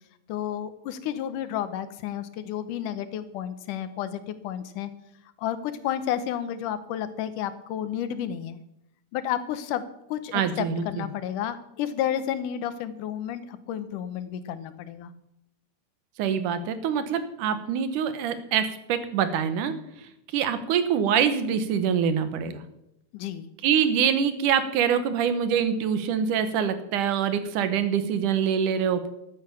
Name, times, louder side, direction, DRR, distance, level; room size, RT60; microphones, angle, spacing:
voice 1, 0.3-4.9 5.4-8.6 9.1-15.1 23.1-23.5, left 10 dB, 85° left, 12 dB, 2.5 m, -31 dB
voice 2, 10.3-11.1 16.2-19.7 20.3-22.6 23.6-29.1, right 8 dB, 85° right, 11 dB, 2.7 m, -25 dB
13.0 x 8.8 x 6.9 m, 0.82 s
omnidirectional pair, 3.6 m